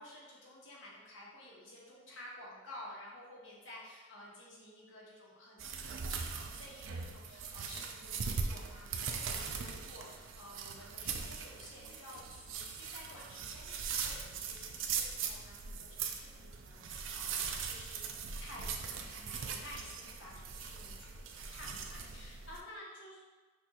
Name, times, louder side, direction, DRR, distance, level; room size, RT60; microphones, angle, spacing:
voice 1, 0.0-18.0 18.4-23.3, left 1 dB, 75° left, -5 dB, 1.3 m, -52 dB
sound 1, 5.6-22.6, right 6 dB, 80° right, 0.4 m, -40 dB
6.2 x 2.6 x 2.9 m, 1.3 s
head